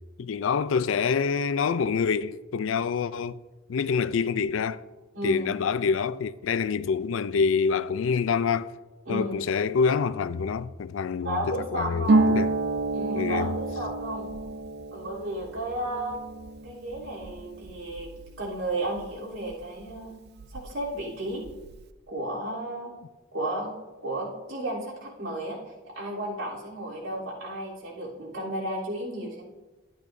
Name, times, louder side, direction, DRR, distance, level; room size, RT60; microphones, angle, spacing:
voice 1, 0.2-3.4 3.7-4.8 5.2-8.7 9.1-12.5 13.1-13.5, left 5 dB, 70° left, 0.4 m, -26 dB
voice 2, 5.1-5.5 9.1-9.3 11.2-12.3 12.9-14.3 14.9-16.2 16.6-18.1 18.4-20.2 20.5-21.5 22.1-23.0 23.3-29.4, right 1 dB, 85° right, 3.4 m, -33 dB
Harp, 12.1-19.5 19.8-20.9 21.2-21.8, right 2 dB, 55° right, 0.4 m, -29 dB
12.0 x 10.5 x 2.6 m
head